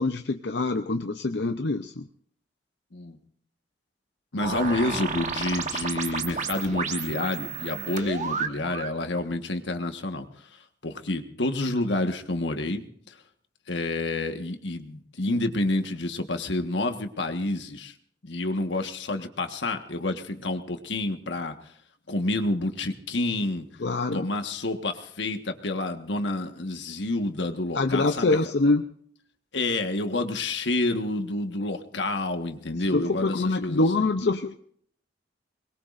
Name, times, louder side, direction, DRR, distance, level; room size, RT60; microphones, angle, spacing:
voice 1, 0.0-2.1 23.8-24.3 27.7-28.9 32.8-34.5, left 2 dB, 65° left, 7 dB, 0.7 m, -25 dB
voice 2, 4.3-10.2 10.8-12.8 13.7-17.9 18.2-21.5 22.1-23.7 24.1-28.4 29.5-34.1, left 2 dB, 85° left, 6 dB, 1.5 m, -29 dB
sound 1, 4.4-9.0, right 5 dB, 45° right, 1.2 m, -32 dB
23.5 x 21.0 x 2.6 m, 0.63 s
head